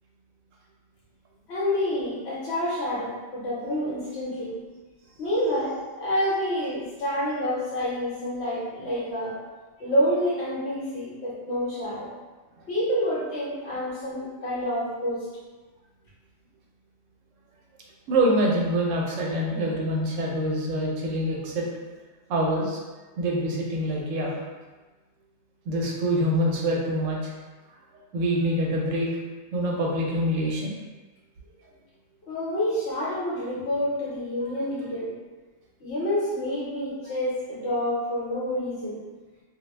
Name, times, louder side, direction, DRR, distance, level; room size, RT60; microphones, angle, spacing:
voice 1, 1.5-4.6 5.2-9.4 9.8-12.1 12.7-15.3 32.3-35.1 35.8-39.0, equal, 60° left, -7 dB, 1.0 m, -28 dB
voice 2, 18.1-21.7 22.3-22.8 23.2-24.4 25.7-27.3 28.1-29.1 29.5-30.8, right 1 dB, 75° right, -2 dB, 0.9 m, -25 dB
2.3 x 2.0 x 3.1 m, 1.3 s
omnidirectional pair, 1.4 m